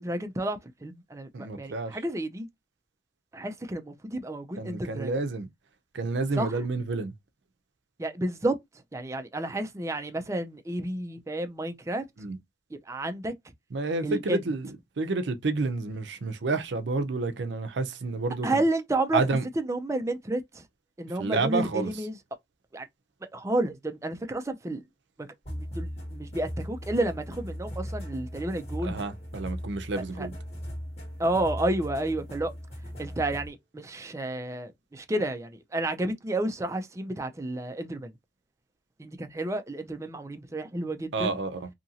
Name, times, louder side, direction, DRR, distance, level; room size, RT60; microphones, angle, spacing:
voice 1, 0.0-2.5 3.3-5.1 6.4-6.5 8.0-8.6 8.9-12.0 12.9-13.3 14.0-14.4 18.4-19.2 19.6-20.6 21.0-22.2 22.7-22.9 23.3-24.8 25.5-29.1 30.2-30.3 31.2-32.5 33.0-38.1 39.0-41.4, right 1 dB, 15° right, 0.4 m, -31 dB
voice 2, 1.3-2.0 4.6-5.5 5.9-7.1 12.2-12.4 13.7-18.6 19.1-19.5 21.2-21.9 28.8-30.3 41.1-41.7, right 3 dB, 65° right, 0.5 m, -29 dB
sound 1, 25.5-33.5, equal, 35° left, 1.5 m, -38 dB
2.8 x 2.5 x 2.7 m
head